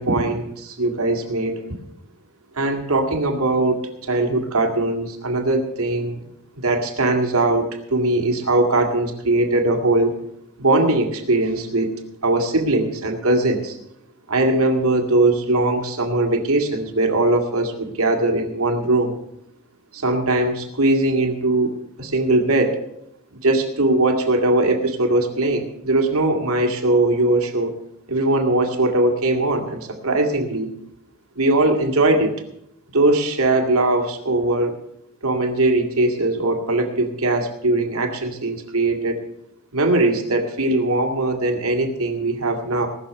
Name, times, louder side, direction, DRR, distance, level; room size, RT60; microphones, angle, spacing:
voice 1, 0.0-1.6 2.5-6.2 6.5-10.2 10.6-11.9 12.2-13.8 14.3-19.1 19.9-21.7 22.0-22.8 23.4-27.7 28.1-30.7 31.4-32.4 32.9-34.8 35.2-39.2 39.7-42.9, right 2 dB, 80° right, 3 dB, 2.2 m, -20 dB
19.0 x 6.5 x 6.7 m, 0.76 s
head